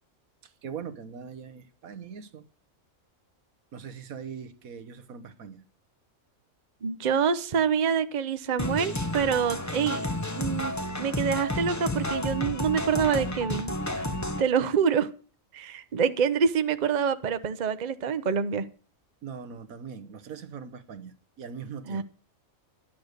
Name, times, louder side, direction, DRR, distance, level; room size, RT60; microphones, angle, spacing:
voice 1, 0.4-2.4 3.7-5.6 19.2-22.0, right 6 dB, 85° right, 1.5 m, -41 dB
voice 2, 6.8-10.1 10.4-13.7 14.4-15.1 15.5-18.7 21.9-22.0, right 7 dB, 40° right, 0.8 m, -26 dB
sound 1, 8.6-14.4, left 1 dB, 15° left, 0.7 m, -31 dB
12.0 x 10.5 x 6.5 m
omnidirectional pair, 1.4 m